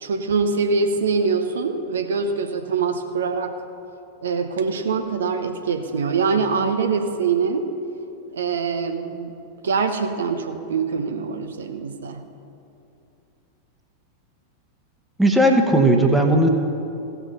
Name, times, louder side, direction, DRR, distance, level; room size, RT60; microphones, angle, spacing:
voice 1, 0.0-3.5 4.2-7.7 8.3-9.3 9.6-12.2, right 5 dB, 65° right, 6 dB, 0.6 m, -24 dB
voice 2, 15.2-16.5, right 1 dB, 5° right, 3 dB, 1.0 m, -16 dB
16.0 x 5.8 x 5.5 m, 2.8 s
figure-of-eight pair, 90°, 0 cm